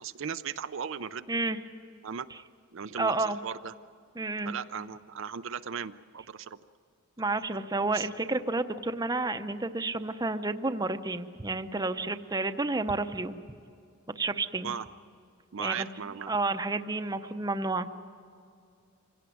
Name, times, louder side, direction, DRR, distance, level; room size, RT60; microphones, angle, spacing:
voice 1, 0.0-1.3 2.0-2.3 2.7-3.7 4.5-6.6 7.9-8.1 14.6-14.9 15.5-16.3, right 7 dB, 65° right, 11 dB, 0.5 m, -37 dB
voice 2, 1.3-1.6 3.0-3.4 4.2-4.5 7.2-13.4 14.2-14.7 15.6-17.9, right 3 dB, 20° right, 9 dB, 0.8 m, -30 dB
25.5 x 17.0 x 9.3 m, 2.3 s
head